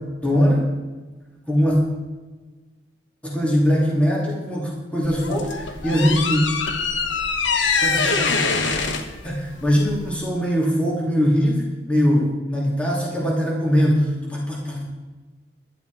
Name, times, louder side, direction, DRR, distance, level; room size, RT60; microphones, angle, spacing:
voice 1, 0.2-0.7 1.5-1.8 3.2-6.4 7.8-14.8, equal, 5° left, -4 dB, 2.5 m, -21 dB
sound 1, 5.0-10.2, left 4 dB, 75° left, 1.1 m, -24 dB
11.5 x 11.0 x 4.7 m, 1.3 s
head